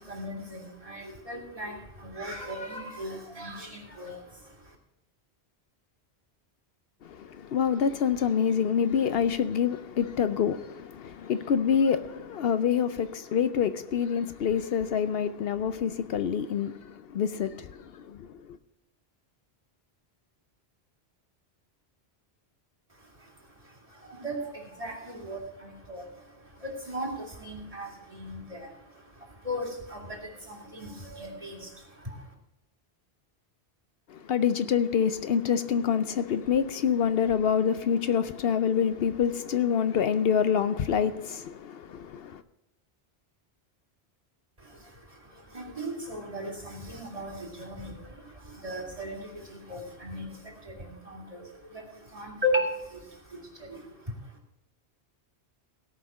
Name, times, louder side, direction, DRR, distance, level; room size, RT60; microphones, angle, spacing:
voice 1, 0.0-4.8 22.9-32.3 44.6-54.4, equal, 35° right, 2.5 m, -37 dB
voice 2, 7.0-18.3 34.1-42.4, left 7 dB, 70° left, 0.8 m, -26 dB
17.0 x 5.8 x 6.1 m
omnidirectional pair, 1.1 m